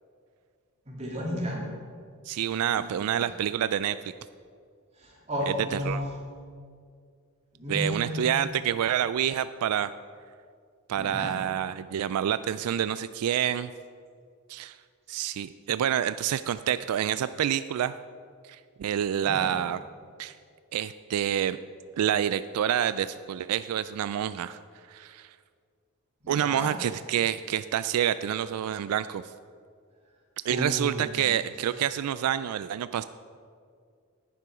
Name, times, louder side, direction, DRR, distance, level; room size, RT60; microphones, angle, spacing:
voice 1, 0.9-1.6 2.7-3.1 5.0-6.0 7.5-8.2 10.9-11.3 19.2-19.5 26.2-26.7 30.5-31.1, equal, 30° right, -4 dB, 2.7 m, -33 dB
voice 2, 2.2-4.0 5.5-6.0 7.7-9.9 10.9-13.7 14.5-14.8 15.1-18.0 18.4-19.8 20.2-20.3 20.7-21.6 22.0-24.6 24.9-25.4 26.3-29.2 30.4-33.0, right 10 dB, 85° right, 14 dB, 0.3 m, -28 dB
11.0 x 9.5 x 4.9 m, 2.2 s
head